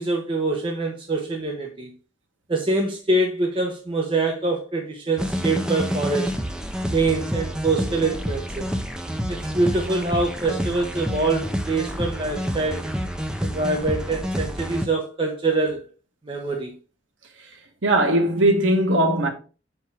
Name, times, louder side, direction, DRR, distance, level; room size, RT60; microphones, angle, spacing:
voice 1, 0.0-1.9 2.5-6.3 6.9-8.7 9.3-12.9 13.4-15.8 16.2-16.7, right 2 dB, 25° right, 0.8 m, -24 dB
sound 1, 5.2-14.9, equal, 5° right, 0.5 m, -28 dB
voice 2, 17.8-19.3, right 1 dB, 85° right, 1.3 m, -19 dB
6.7 x 4.6 x 3.5 m
head